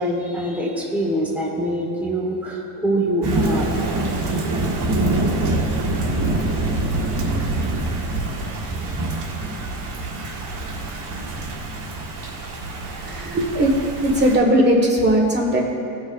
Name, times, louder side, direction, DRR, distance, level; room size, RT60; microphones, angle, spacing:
voice 1, 0.0-3.8, right 1 dB, 5° right, -3 dB, 1.4 m, -24 dB
Thunder / Rain, 3.2-14.4, right 2 dB, 80° right, 1.8 m, -25 dB
voice 2, 13.0-13.7 14.0-15.6, right 1 dB, 25° right, -1 dB, 1.7 m, -18 dB
17.5 x 6.4 x 2.6 m, 2.7 s
cardioid pair, 130°, 41 cm